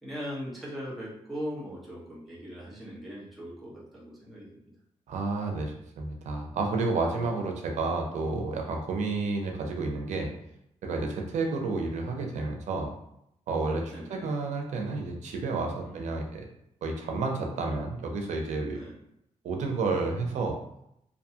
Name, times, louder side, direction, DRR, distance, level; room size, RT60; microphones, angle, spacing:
voice 1, 0.0-4.5 13.9-14.3 15.8-16.1 18.7-18.9, equal, ahead, -7 dB, 0.9 m, -39 dB
voice 2, 5.1-10.3 10.8-12.9 13.5-16.4 16.8-18.8 19.4-20.6, right 3 dB, 85° right, 2 dB, 0.5 m, -30 dB
2.6 x 2.2 x 2.7 m, 0.78 s
cardioid pair, 95°, 12 cm